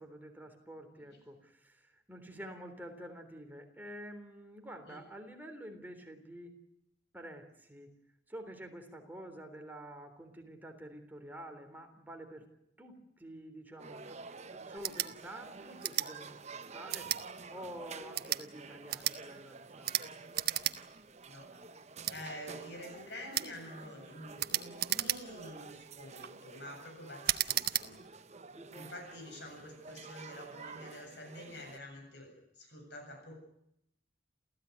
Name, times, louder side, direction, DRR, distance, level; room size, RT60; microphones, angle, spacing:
voice 1, 0.0-6.5 7.1-7.9 8.3-12.5 12.8-14.2 14.5-20.3 28.5-29.0, right 1 dB, 10° right, 4 dB, 3.6 m, -49 dB
sound 1, 13.8-31.8, right 4 dB, 40° right, 1.0 m, -50 dB
sound 2, 14.8-15.1 15.8-16.1 16.9-17.2 18.0-18.4 18.9-19.2 19.8-20.1 20.3-20.8 21.1-21.2 22.0-22.2 23.3-23.5 24.4-25.5 26.0-26.3 27.2-27.9, right 12 dB, 60° right, 1.2 m, -33 dB
voice 2, 22.1-28.0 28.7-33.4, left 1 dB, 70° left, 3 dB, 7.9 m, -48 dB
29.0 x 15.5 x 9.6 m, 0.80 s
head